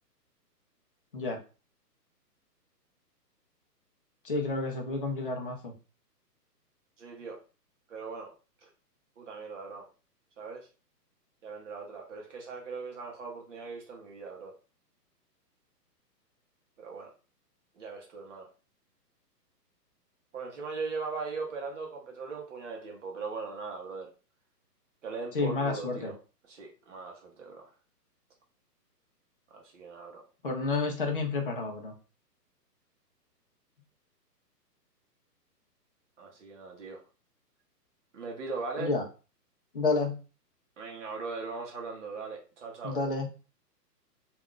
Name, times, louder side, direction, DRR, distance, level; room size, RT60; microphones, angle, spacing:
voice 1, 4.2-5.7 25.3-26.1 30.4-31.9 38.8-39.0 39.7-40.2 42.8-43.3, left 3 dB, 35° left, 0.4 m, -30 dB
voice 2, 7.0-7.4 7.9-8.3 8.6-8.7 9.2-9.9 10.4-10.7 11.4-14.5 16.8-17.1 17.8-18.5 20.3-24.1 25.0-26.2 26.5-27.7 29.5-30.2 36.2-37.0 38.1-38.9 40.8-43.0, right 4 dB, 50° right, 0.8 m, -39 dB
2.4 x 2.3 x 3.5 m
hypercardioid pair, 160°, 49 cm